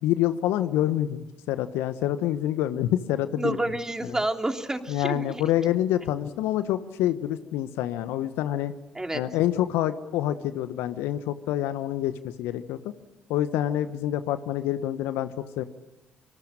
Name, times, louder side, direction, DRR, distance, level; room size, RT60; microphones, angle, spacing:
voice 1, 0.0-3.6 4.9-8.7 9.1-12.9 13.3-15.6, left 12 dB, 70° left, 12 dB, 1.2 m, -27 dB
voice 2, 3.4-5.4 8.9-9.2, right 1 dB, 15° right, 4 dB, 3.1 m, -29 dB
25.5 x 25.0 x 9.0 m, 1.1 s
hypercardioid pair, 50°, 4 cm